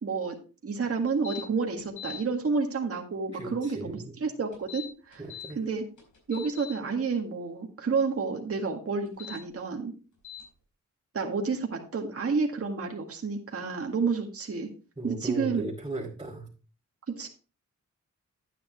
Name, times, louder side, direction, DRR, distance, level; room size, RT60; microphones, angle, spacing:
voice 1, 0.0-0.4 0.6-5.2 5.6-5.8 6.3-9.9 11.1-14.7 15.0-15.7 17.2-17.3, right 4 dB, 50° right, 2 dB, 1.8 m, -30 dB
sound 1, 1.2-1.4 1.8-2.2 4.5-5.5 6.0-6.7 9.1-9.4 10.2-10.4, left 9 dB, 80° left, 4.6 m, -41 dB
voice 2, 3.3-4.2 5.2-5.6 15.0-16.5, right 3 dB, 15° right, -4 dB, 2.3 m, -37 dB
10.5 x 9.2 x 3.1 m, 0.35 s
wide cardioid pair, 100°, 30 cm